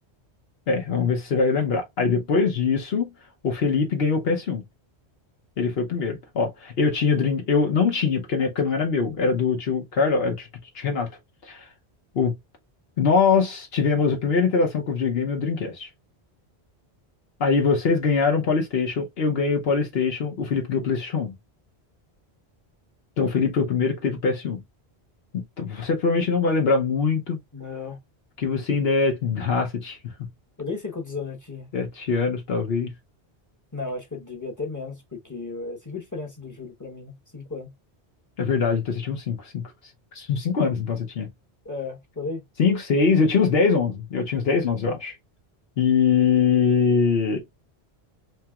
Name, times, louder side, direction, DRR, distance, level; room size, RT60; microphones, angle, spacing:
voice 1, 0.7-3.1 3.4-4.6 5.6-10.5 10.7-11.1 11.4-11.6 12.1-12.3 13.0-15.9 17.4-21.3 23.2-24.6 25.3-27.4 28.4-30.0 31.7-32.9 38.4-39.6 40.1-41.3 42.6-45.1 45.8-47.4, left 5 dB, 65° left, 1.0 m, -23 dB
voice 2, 27.5-28.0 30.6-31.7 33.7-37.7 41.6-42.4, left 4 dB, 20° left, 0.9 m, -34 dB
4.3 x 2.9 x 2.2 m
omnidirectional pair, 1.1 m